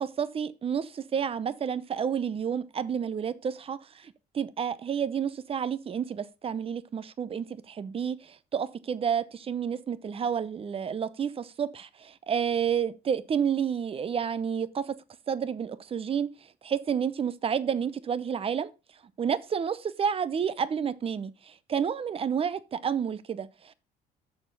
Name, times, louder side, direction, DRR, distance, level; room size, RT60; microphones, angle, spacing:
voice 1, 0.0-15.0 15.3-16.3 16.6-18.7 19.2-23.7, right 7 dB, 35° right, 0.7 m, -30 dB
6.8 x 6.4 x 5.4 m
cardioid pair, 110°, 17 cm